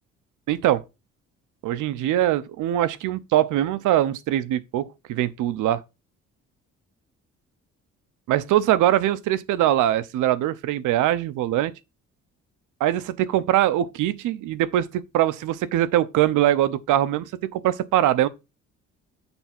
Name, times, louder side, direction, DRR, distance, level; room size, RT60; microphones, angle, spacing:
voice 1, 0.5-0.8 1.6-5.8 8.3-11.7 12.8-18.3, right 12 dB, 85° right, 0.7 m, -22 dB
7.0 x 3.4 x 5.8 m
cardioid pair, 90°, 30 cm